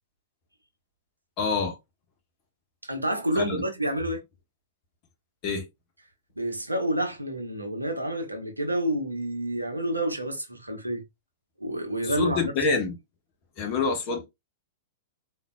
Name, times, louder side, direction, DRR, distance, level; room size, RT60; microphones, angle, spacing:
voice 1, 1.4-1.8 3.3-3.6 5.4-5.6 12.0-13.0 13.6-14.3, left 4 dB, 40° left, 1.3 m, -26 dB
voice 2, 2.8-4.2 6.4-11.0 11.6-12.7, right 1 dB, 90° right, 0.9 m, -29 dB
3.9 x 2.7 x 2.3 m
figure-of-eight pair, 100°, 0 cm